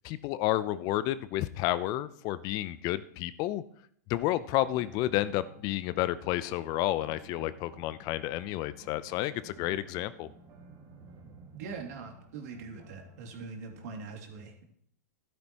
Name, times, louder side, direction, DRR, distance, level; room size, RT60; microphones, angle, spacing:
voice 1, 0.0-3.6 4.1-10.3, left 15 dB, 40° left, 15 dB, 0.6 m, -31 dB
sound 1, 4.6-14.1, right 4 dB, 35° right, 2.3 m, -54 dB
voice 2, 11.5-14.6, right 4 dB, 60° right, 2 dB, 2.6 m, -42 dB
13.5 x 12.5 x 3.0 m, 0.68 s
hypercardioid pair, 110°, 10 cm